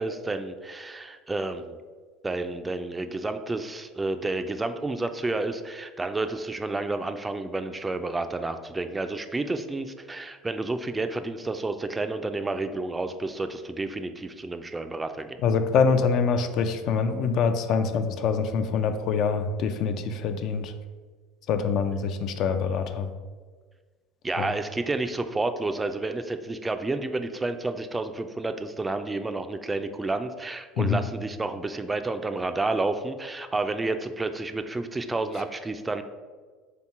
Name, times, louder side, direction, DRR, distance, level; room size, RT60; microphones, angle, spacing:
voice 1, 0.0-1.8 2.2-15.4 24.2-36.0, right 2 dB, 15° right, 9 dB, 0.3 m, -30 dB
voice 2, 15.4-20.7 21.5-23.1 24.4-24.5 30.8-31.0, left 5 dB, 60° left, 8 dB, 0.4 m, -25 dB
3.4 x 2.9 x 4.6 m, 1.5 s
hypercardioid pair, 85°, 0 cm